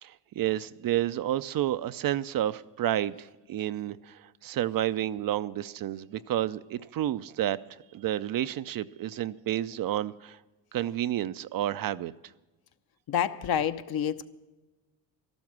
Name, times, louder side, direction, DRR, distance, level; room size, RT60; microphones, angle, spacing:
voice 1, 0.0-7.6 7.9-10.4 10.7-12.1, right 12 dB, 50° right, 0.5 m, -30 dB
voice 2, 13.1-14.3, left 9 dB, 50° left, 0.9 m, -28 dB
13.0 x 12.5 x 6.1 m
supercardioid pair, 85°, 46 cm